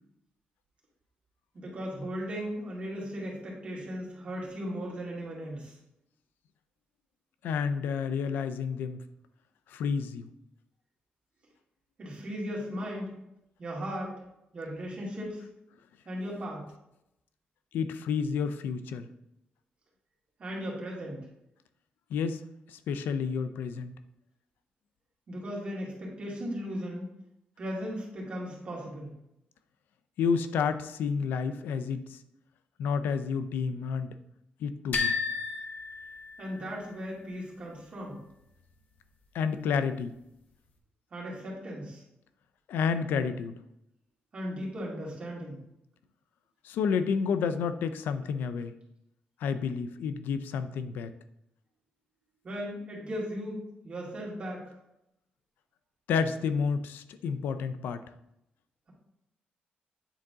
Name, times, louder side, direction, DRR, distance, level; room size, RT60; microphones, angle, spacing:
voice 1, 1.5-5.8 12.0-13.1 13.6-14.1 14.5-15.5 16.1-16.7 20.4-21.2 25.3-27.1 27.6-29.1 36.4-38.2 41.1-42.0 44.3-45.6 52.4-54.6, equal, 35° right, -4 dB, 2.4 m, -37 dB
voice 2, 7.4-9.0 9.7-10.3 17.7-19.1 22.1-22.4 22.7-23.9 30.2-32.2 32.8-34.1 34.6-35.1 39.3-40.1 42.7-43.5 46.6-48.7 49.4-51.1 56.1-58.0, left 6 dB, 85° left, 11 dB, 0.4 m, -30 dB
sound 1, 34.9-36.8, left 5 dB, 60° left, 0.9 m, -33 dB
9.1 x 3.9 x 3.6 m, 0.83 s
cardioid pair, 145°, 3 cm